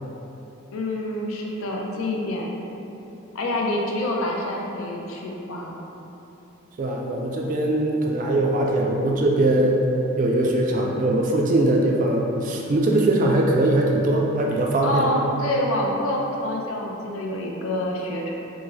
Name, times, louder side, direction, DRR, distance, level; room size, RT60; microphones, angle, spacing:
voice 1, 0.7-2.5 3.3-5.8 14.8-18.3, left 1 dB, 85° left, -1 dB, 0.5 m, -27 dB
voice 2, 6.8-9.8 10.2-15.1, right 1 dB, 40° right, 0 dB, 0.3 m, -21 dB
4.7 x 2.0 x 2.6 m, 2.9 s
head